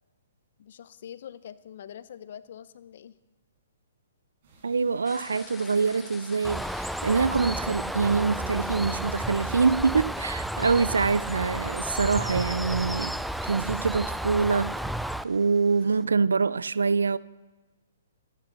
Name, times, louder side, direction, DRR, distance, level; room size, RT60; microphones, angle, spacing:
voice 1, 0.6-3.1, left 9 dB, 60° left, 0.8 m, -44 dB
sound 1, 4.4-12.9, right 3 dB, 50° right, 6.1 m, -60 dB
voice 2, 4.6-14.8 15.2-17.2, right 4 dB, 80° right, 0.5 m, -25 dB
sound 2, 5.0-16.0, left 6 dB, 15° left, 0.9 m, -51 dB
Bird, 6.4-15.2, right 1 dB, ahead, 0.4 m, -32 dB
15.0 x 11.0 x 7.1 m
hypercardioid pair, 130°, 0 cm